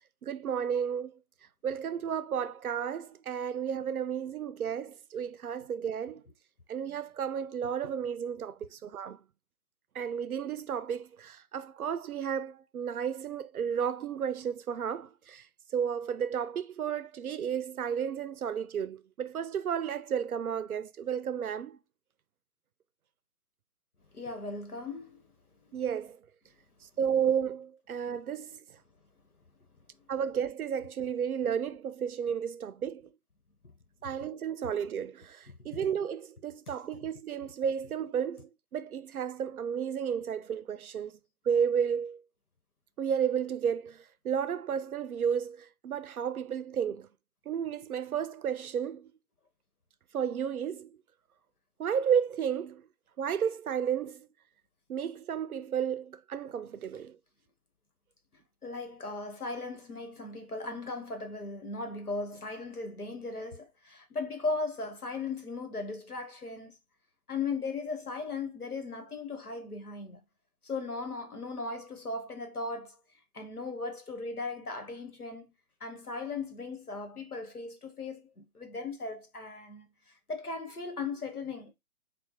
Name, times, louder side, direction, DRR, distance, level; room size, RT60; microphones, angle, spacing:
voice 1, 0.2-1.1 1.6-6.2 6.7-9.2 10.0-15.4 15.7-21.8 25.7-26.2 27.0-28.6 30.1-33.1 34.0-41.1 41.5-42.2 43.0-44.0 44.2-47.1 47.5-49.1 50.1-50.9 51.8-52.8 53.2-54.3 54.9-57.1, right 8 dB, 80° right, 0.5 m, -32 dB
voice 2, 24.1-25.2 25.6-25.7 35.5-35.9 36.7-36.8 37.0-37.1 58.6-66.7 67.3-70.2 70.6-73.0 73.3-75.5 75.8-79.9 80.3-81.7, left 3 dB, 90° left, 1.2 m, -37 dB
3.8 x 2.3 x 4.0 m
figure-of-eight pair, 140°, 43 cm